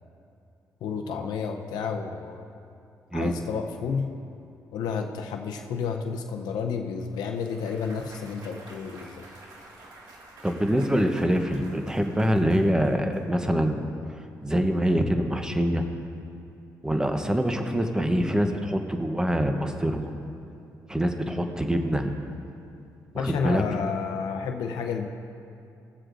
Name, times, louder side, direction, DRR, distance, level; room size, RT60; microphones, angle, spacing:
voice 1, 0.8-2.5 3.1-4.1 4.7-9.2 23.1-25.1, left 6 dB, 85° left, 4 dB, 0.6 m, -31 dB
Clapping / Cheering / Applause, 7.0-13.2, right 2 dB, 75° right, 2.0 m, -49 dB
voice 2, 10.4-13.9 14.4-15.8 16.8-20.1 20.9-22.1 23.1-23.6, equal, 10° right, 5 dB, 0.9 m, -25 dB
17.0 x 7.6 x 2.6 m, 2.6 s
cardioid pair, 80°, 7 cm